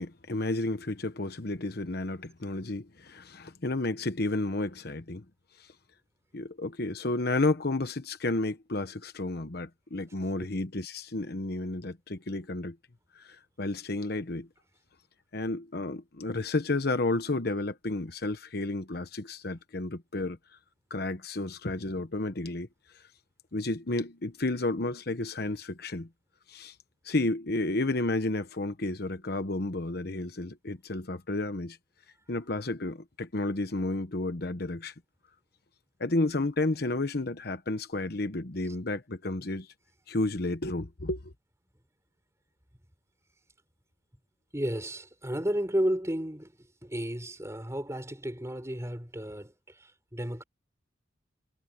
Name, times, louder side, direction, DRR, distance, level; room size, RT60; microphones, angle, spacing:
voice 1, 0.0-5.2 5.6-5.7 6.3-12.8 13.1-14.5 15.3-20.4 20.9-22.7 22.9-23.0 23.5-26.1 26.5-26.7 27.0-31.8 32.3-34.9 36.0-39.7 40.1-41.3, left 2 dB, 55° left, 1.1 m, -31 dB
voice 2, 44.5-46.5 46.8-50.4, equal, 15° right, 4.0 m, -32 dB
head